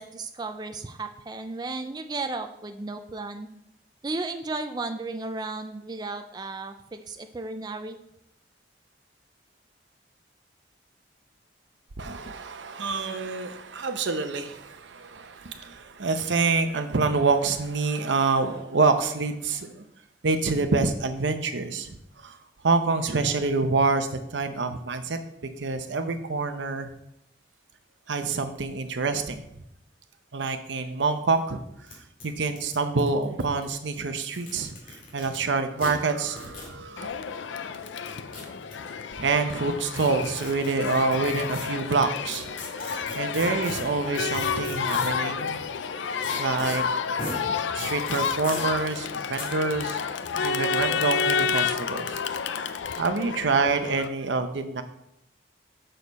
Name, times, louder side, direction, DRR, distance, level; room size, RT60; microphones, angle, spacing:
voice 1, 0.0-3.5 4.0-8.0, right 3 dB, 20° right, 7 dB, 0.4 m, -34 dB
voice 2, 12.0-19.8 20.2-22.4 22.6-26.9 28.1-29.4 30.3-31.6 31.9-37.1 39.2-45.6 46.4-46.8 47.7-50.0 50.4-52.2 52.7-54.8, right 4 dB, 80° right, 8 dB, 0.7 m, -27 dB
sound 1, 31.1-31.2 31.4-31.5 31.9-32.0 32.2-33.6 34.2-35.4 35.8-35.9 36.4-36.7 37.8-38.7 39.9-41.7 42.3-45.2 46.2-46.8 47.2-47.4 47.8-48.6 49.4-49.5, left 2 dB, 45° left, 2.2 m, -38 dB
Crowd, 37.0-54.1, left 6 dB, 80° left, 0.4 m, -30 dB
6.6 x 6.5 x 4.1 m, 0.80 s
head